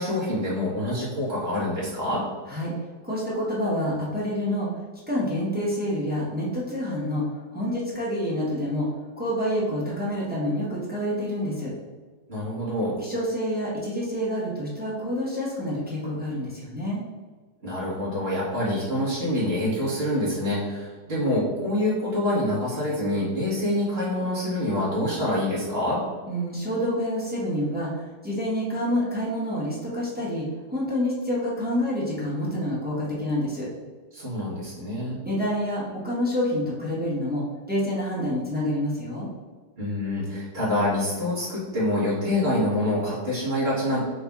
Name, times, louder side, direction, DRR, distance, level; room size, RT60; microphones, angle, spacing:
voice 1, 0.0-2.2 12.3-13.0 17.6-26.0 34.1-35.2 39.8-44.0, left 1 dB, 40° right, -8 dB, 1.8 m, -26 dB
voice 2, 3.0-4.7 5.1-7.2 7.5-8.9 9.2-11.7 13.0-17.0 26.3-33.7 35.2-39.3, equal, 10° right, -6 dB, 0.5 m, -27 dB
4.2 x 2.8 x 3.5 m, 1.4 s
omnidirectional pair, 1.7 m